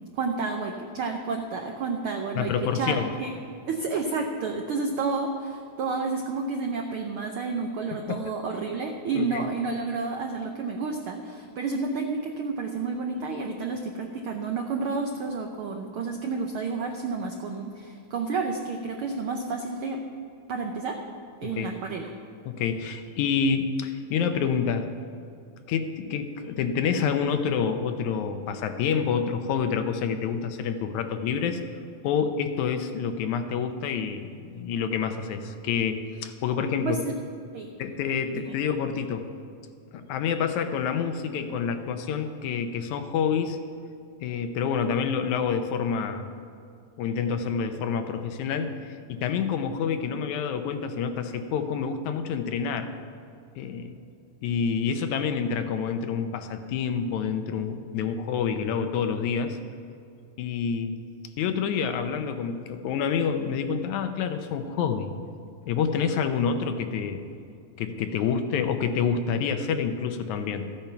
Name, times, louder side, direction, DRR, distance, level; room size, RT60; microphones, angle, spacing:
voice 1, 0.2-3.3 3.7-20.0 20.5-21.0 21.4-22.1 36.8-37.2 37.5-37.7 38.3-38.6, right 4 dB, 85° right, 3 dB, 1.2 m, -30 dB
voice 2, 2.4-3.1 8.1-8.2 9.1-9.4 21.4-21.7 22.5-24.9 25.7-31.6 32.0-37.0 37.8-39.3 39.9-43.6 44.2-46.3 47.0-52.9 53.6-53.9 54.4-59.6 60.4-61.0 61.4-65.1 65.7-67.2 67.8-70.7, left 6 dB, 80° left, 7 dB, 2.1 m, -28 dB
14.0 x 8.8 x 5.8 m, 2.5 s
omnidirectional pair, 3.5 m